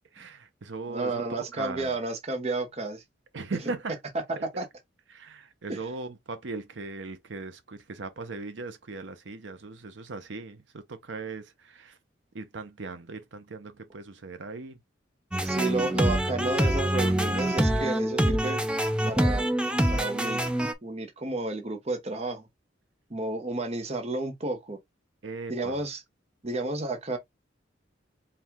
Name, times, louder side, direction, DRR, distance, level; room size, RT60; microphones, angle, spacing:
voice 1, 0.1-2.0 3.3-3.9 4.4-4.5 5.1-12.0 12.3-14.8 15.8-16.1 25.2-25.9, right 3 dB, 75° right, 0.7 m, -39 dB
voice 2, 0.9-3.0 4.6-4.7 5.7-5.8 15.4-18.6 19.1-19.5 19.9-20.5 20.8-22.5 23.1-24.8 25.5-26.0 26.4-27.2, right 2 dB, 35° right, 0.8 m, -31 dB
sound 1, 15.3-20.7, right 1 dB, 5° right, 0.4 m, -25 dB
4.6 x 2.3 x 3.5 m
head